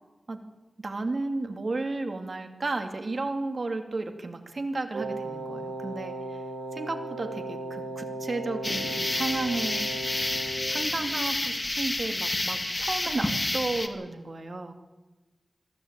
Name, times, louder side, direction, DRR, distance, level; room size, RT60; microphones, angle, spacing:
voice 1, 0.8-6.1 6.7-9.9 10.7-14.7, right 2 dB, 50° right, 6 dB, 2.5 m, -33 dB
Wind instrument woodwind instrument, 4.9-10.7, right 2 dB, 90° right, 5.4 m, -36 dB
sound 1, 8.6-13.9, left 2 dB, 25° left, 2.0 m, -29 dB
22.5 x 14.0 x 8.8 m, 1.2 s
wide cardioid pair, 85°, 0 cm